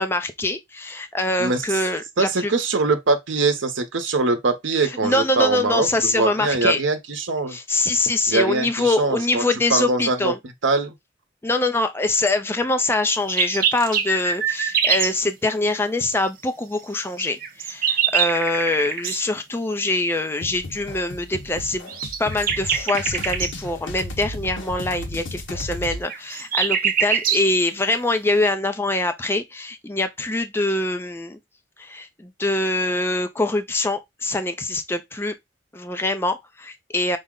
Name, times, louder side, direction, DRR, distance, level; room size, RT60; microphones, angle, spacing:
voice 1, 0.0-2.5 5.0-6.8 7.5-10.4 11.4-21.9 22.2-31.4 31.8-35.3 35.7-37.2, left 2 dB, 10° left, 0.4 m, -24 dB
voice 2, 2.2-5.9 6.1-7.6 8.3-9.4 9.7-10.3 10.6-10.9, right 3 dB, 80° right, 0.8 m, -22 dB
sound 1, 13.1-15.2 17.2-19.2 21.9-23.5 25.9-27.5, right 7 dB, 45° right, 0.6 m, -23 dB
sound 2, 20.4-26.0, left 1 dB, 85° left, 0.9 m, -34 dB
5.4 x 2.1 x 3.6 m
head